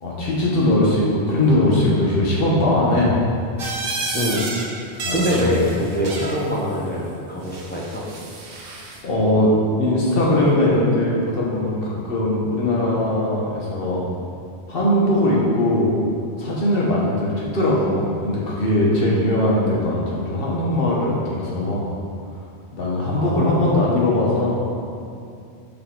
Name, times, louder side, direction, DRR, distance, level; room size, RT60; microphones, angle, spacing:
voice 1, 0.0-3.1 5.0-5.6 9.0-9.5 9.8-14.0 14.7-16.0 16.4-21.9 22.7-24.6, left 1 dB, 55° left, -5 dB, 1.4 m, -20 dB
sound 1, 3.6-4.6 4.9-6.4 7.5-9.0, right 2 dB, 60° right, 0.9 m, -30 dB
voice 2, 4.1-4.5 5.1-8.0 23.1-24.0, equal, 10° left, -5 dB, 0.8 m, -24 dB
6.8 x 4.2 x 3.9 m, 2.5 s
omnidirectional pair, 1.1 m